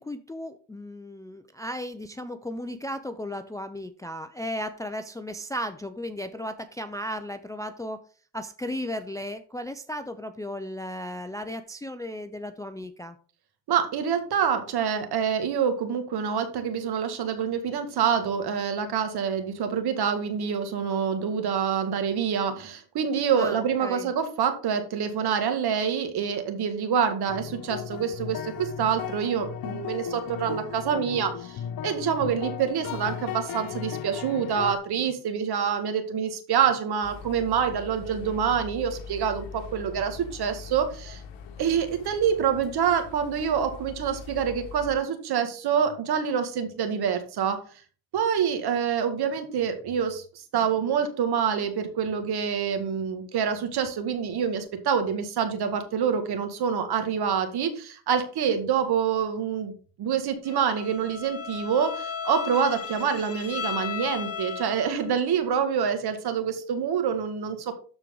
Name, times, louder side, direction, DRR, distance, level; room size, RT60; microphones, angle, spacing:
voice 1, 0.0-8.0 8.3-13.2 23.3-24.1, equal, 10° left, 9 dB, 0.5 m, -35 dB
voice 2, 13.7-41.2 41.6-47.6 48.1-50.2 50.5-59.7 60.0-67.7, right 7 dB, 55° right, 7 dB, 2.0 m, -26 dB
sound 1, 27.3-34.8, left 10 dB, 50° left, 0.9 m, -36 dB
sound 2, 37.0-45.0, left 6 dB, 70° left, 1.7 m, -42 dB
Bowed string instrument, 60.5-65.1, left 7 dB, 30° left, 1.2 m, -35 dB
13.0 x 4.5 x 3.9 m, 0.39 s
cardioid pair, 115°, 46 cm